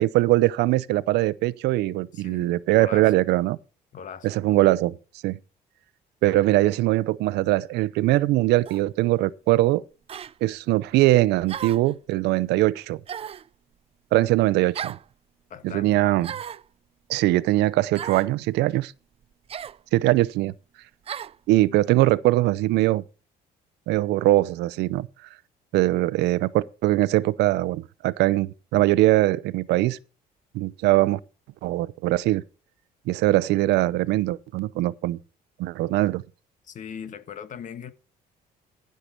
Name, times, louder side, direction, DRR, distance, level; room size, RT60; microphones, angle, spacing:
voice 1, 0.0-3.6 4.2-5.0 5.2-5.4 6.2-9.8 10.4-13.0 14.1-15.0 15.6-16.3 17.1-18.9 19.9-20.5 21.5-23.0 23.9-25.1 25.7-30.0 30.5-31.2 31.6-32.4 33.1-35.2 35.6-36.2, right 17 dB, 85° right, 0.7 m, -21 dB
voice 2, 2.1-3.1 3.9-4.4 15.5-16.0 36.7-37.9, left 7 dB, 50° left, 1.4 m, -39 dB
sound 1, 8.7-8.9 10.1-10.3 11.5-11.9 13.1-13.5 14.7-15.1 16.2-16.7 17.9-18.3 19.5-19.8 21.1-21.4, right 9 dB, 35° right, 0.5 m, -35 dB
15.5 x 6.7 x 4.5 m
cardioid pair, 110°, 17 cm